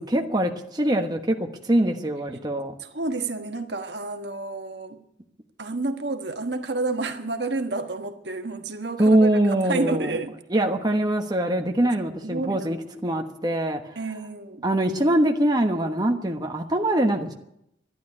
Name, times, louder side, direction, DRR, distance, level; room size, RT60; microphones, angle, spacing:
voice 1, 0.0-2.7 9.0-10.1 10.5-13.8 14.6-17.3, right 1 dB, 20° right, 3 dB, 1.2 m, -23 dB
voice 2, 2.8-5.0 5.6-9.3 9.6-10.3 12.2-12.7 14.0-14.6, right 3 dB, 65° right, 6 dB, 1.4 m, -30 dB
12.5 x 11.0 x 9.7 m, 0.79 s
head